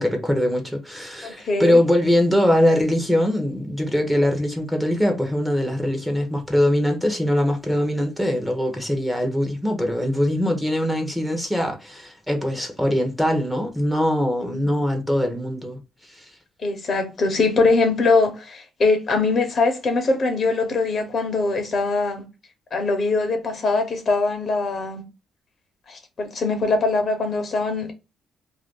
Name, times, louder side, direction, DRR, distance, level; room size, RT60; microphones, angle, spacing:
voice 1, 0.0-16.3, left 1 dB, 5° right, 0.9 m, -22 dB
voice 2, 1.2-1.8 14.4-14.7 16.6-22.2 22.7-25.0 25.9-27.9, left 3 dB, 50° left, 1.0 m, -22 dB
2.6 x 2.1 x 3.6 m
cardioid pair, 90°, 0 cm